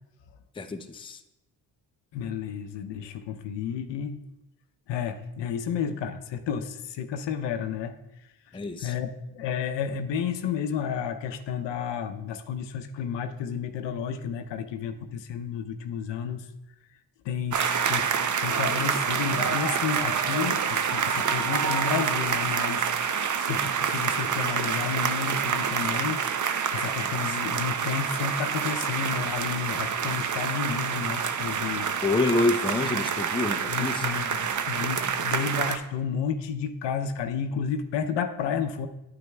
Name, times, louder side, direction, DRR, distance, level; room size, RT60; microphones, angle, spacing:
voice 1, 0.5-1.2 8.5-8.9 27.3-27.4 32.0-34.1, left 2 dB, 10° left, 8 dB, 0.6 m, -27 dB
voice 2, 2.1-4.2 4.9-8.0 8.8-16.5 17.2-31.9 33.7-38.9, left 7 dB, 65° left, 8 dB, 0.7 m, -31 dB
sound 1, 17.5-35.8, right 7 dB, 40° right, 0.7 m, -27 dB
9.2 x 8.8 x 2.3 m, 0.94 s
hypercardioid pair, 50°, 46 cm